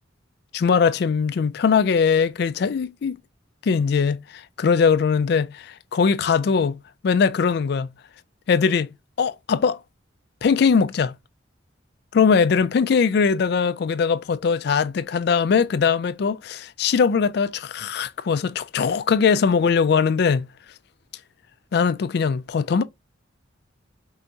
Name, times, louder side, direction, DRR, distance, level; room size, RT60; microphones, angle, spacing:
voice 1, 0.5-3.2 3.6-7.9 8.5-9.8 10.4-11.1 12.1-20.5 21.7-22.8, left 6 dB, 55° left, 0.3 m, -21 dB
5.5 x 2.7 x 2.8 m
head